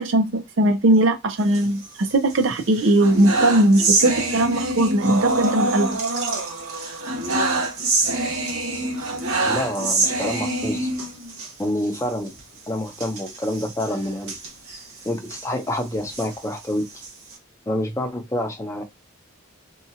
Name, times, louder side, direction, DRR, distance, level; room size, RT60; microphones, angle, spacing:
voice 1, 0.0-5.9, right 1 dB, 65° right, 0.5 m, -19 dB
sound 1, 1.4-2.3 2.7-11.5 11.9-12.0 12.3-12.4 12.9-15.5 15.9-17.3, right 2 dB, 90° right, 1.0 m, -25 dB
voice 2, 9.5-10.9 11.6-12.4 12.7-14.4 15.0-16.9 17.7-18.8, left 1 dB, 15° left, 0.5 m, -27 dB
2.8 x 2.4 x 2.7 m
head